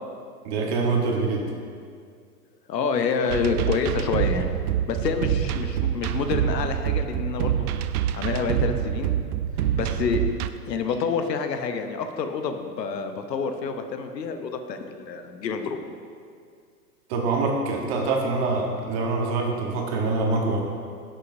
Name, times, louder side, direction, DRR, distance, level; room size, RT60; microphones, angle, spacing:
voice 1, 0.4-1.5 17.1-20.7, right 3 dB, 40° right, 1 dB, 1.3 m, -25 dB
voice 2, 2.7-4.5 4.9-7.7 8.1-9.1 9.7-10.2 10.7-15.8, left 5 dB, 85° left, 7 dB, 1.0 m, -28 dB
sound 1, 3.3-10.5, right 10 dB, 65° right, 0.5 m, -26 dB
12.0 x 6.6 x 2.7 m, 2.2 s
hypercardioid pair, 135°, 48 cm